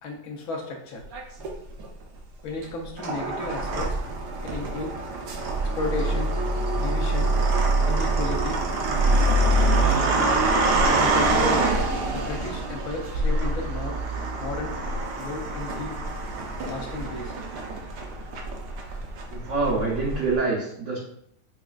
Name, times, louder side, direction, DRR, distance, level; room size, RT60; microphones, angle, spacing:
voice 1, 0.0-1.0 2.4-4.0 4.4-5.0 5.5-6.4 6.7-7.3 7.8-8.6 10.9-11.8 12.1-14.8 15.2-16.0 16.7-17.4, left 3 dB, 65° left, 1 dB, 1.1 m, -34 dB
sound 1, 1.1-1.9 2.6-20.4, right 2 dB, 75° right, 1.2 m, -25 dB
voice 2, 19.3-21.0, right 3 dB, 60° right, -4 dB, 0.8 m, -26 dB
6.1 x 2.4 x 2.4 m, 0.73 s
omnidirectional pair, 1.9 m